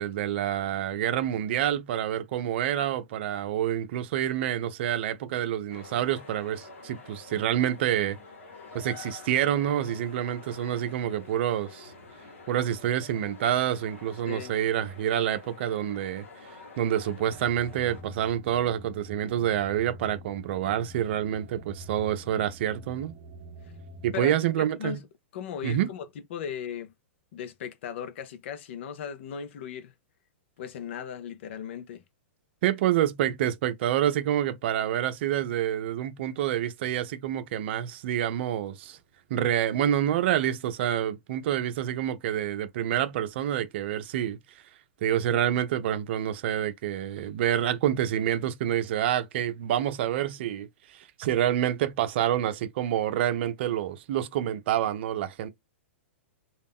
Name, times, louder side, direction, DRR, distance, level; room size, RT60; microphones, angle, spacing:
voice 1, 0.0-8.2 8.7-11.9 12.5-16.2 16.8-23.1 24.0-25.0 25.6-25.9 32.6-39.0 39.3-44.4 45.0-50.7 51.2-55.5, right 11 dB, 60° right, 0.5 m, -27 dB
sound 1, 5.7-18.0, left 4 dB, 80° left, 1.0 m, -48 dB
sound 2, 17.2-24.1, right 1 dB, 25° right, 0.7 m, -47 dB
voice 2, 24.1-25.0 25.3-26.9 27.3-29.9 30.6-32.0, left 8 dB, 65° left, 0.5 m, -37 dB
2.3 x 2.0 x 3.5 m
hypercardioid pair, 125°, 7 cm